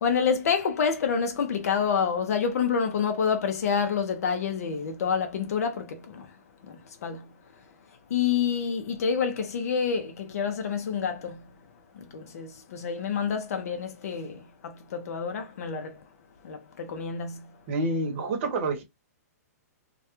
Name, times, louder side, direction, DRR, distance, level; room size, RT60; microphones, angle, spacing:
voice 1, 0.0-6.3 7.0-7.2 8.1-11.4 12.0-16.0 16.4-17.4, left 6 dB, 65° left, 0.5 m, -28 dB
voice 2, 17.7-18.8, right 2 dB, 45° right, 0.8 m, -28 dB
2.2 x 2.1 x 2.8 m
hypercardioid pair, 150°, 9 cm